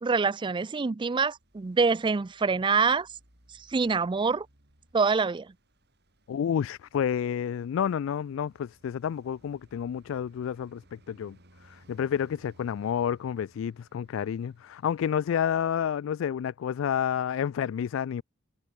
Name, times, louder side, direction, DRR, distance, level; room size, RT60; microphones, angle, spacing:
voice 1, 0.0-3.1 3.7-4.5 4.9-5.5, right 4 dB, 25° right, 0.4 m, -25 dB
Traffic noise roadway noise, 1.1-16.6, right 1 dB, 55° right, 7.8 m, -62 dB
voice 2, 6.3-11.4 11.6-18.2, left 8 dB, 70° left, 0.3 m, -30 dB
head